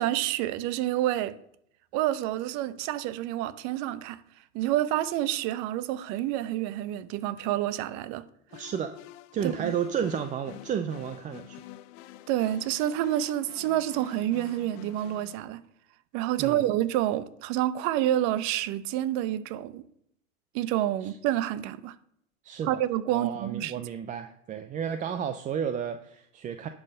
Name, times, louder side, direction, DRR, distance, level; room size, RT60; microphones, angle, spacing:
voice 1, 0.0-1.3 1.9-4.2 4.5-8.2 9.4-9.7 12.3-15.6 16.1-19.8 20.5-21.9 22.6-23.7, right 13 dB, 45° right, 0.8 m, -28 dB
sound 1, 8.5-15.3, left 14 dB, 50° left, 0.7 m, -47 dB
voice 2, 8.5-9.0 9.3-11.6 16.4-16.6 21.0-21.2 22.4-22.8 23.1-26.7, right 8 dB, 20° right, 0.5 m, -32 dB
11.0 x 5.7 x 6.5 m
hypercardioid pair, 120°, 40 cm